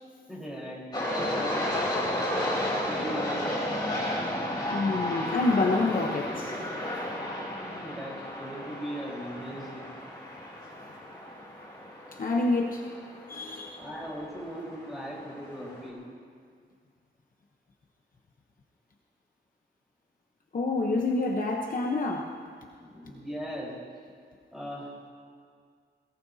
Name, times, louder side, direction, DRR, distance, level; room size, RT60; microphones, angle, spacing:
voice 1, 0.3-0.9 1.3-1.7 2.8-3.6 7.6-9.9 13.8-16.0 22.8-23.8 24.5-25.1, equal, ahead, -6 dB, 4.3 m, -39 dB
sound 1, 0.9-15.9, left 1 dB, 25° left, 3.6 m, -33 dB
voice 2, 4.7-6.6 12.1-12.9 13.3-13.8 20.5-22.4, left 3 dB, 45° left, 1 dB, 0.9 m, -28 dB
21.5 x 17.5 x 2.8 m, 2.1 s
wide cardioid pair, 175°, 19 cm